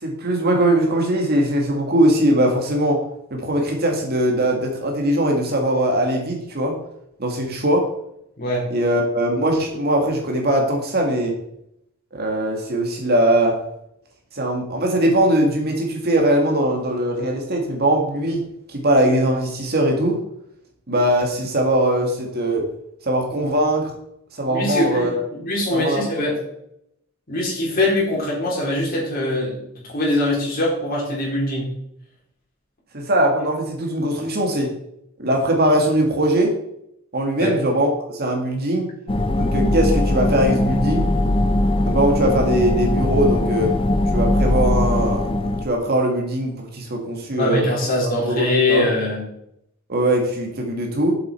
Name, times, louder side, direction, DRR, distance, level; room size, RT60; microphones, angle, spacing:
voice 1, 0.0-3.0 3.3-6.8 7.2-7.9 8.7-11.3 12.1-13.6 14.3-18.4 18.7-20.2 20.9-22.7 23.0-23.9 24.4-25.2 25.7-26.3 32.9-34.7 35.2-36.6 37.1-38.9 39.3-41.1 41.8-43.8 44.1-47.6 48.2-48.8 49.9-51.1, right 1 dB, 50° right, 1 dB, 2.0 m, -20 dB
voice 2, 8.4-8.7 24.5-26.4 27.3-31.7 37.4-37.5 47.4-49.2, left 1 dB, 45° left, -4 dB, 4.2 m, -22 dB
sound 1, 39.1-45.6, left 1 dB, 25° left, 0.5 m, -20 dB
7.8 x 7.8 x 4.5 m, 0.76 s
head